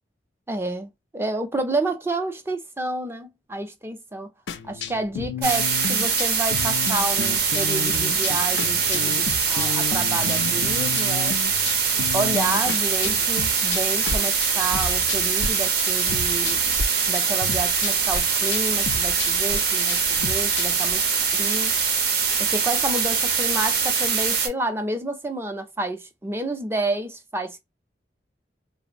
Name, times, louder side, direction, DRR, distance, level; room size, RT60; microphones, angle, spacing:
voice 1, 0.5-4.3 4.6-11.3 12.1-16.7 17.1-21.0 21.3-21.7 22.4-27.6, right 2 dB, 15° right, 0.5 m, -29 dB
sound 1, 4.5-15.5 15.8-16.8 17.1-20.9, left 4 dB, 85° left, 0.4 m, -32 dB
sound 2, 5.4-24.5, right 6 dB, 65° right, 0.8 m, -23 dB
3.1 x 2.0 x 2.4 m
head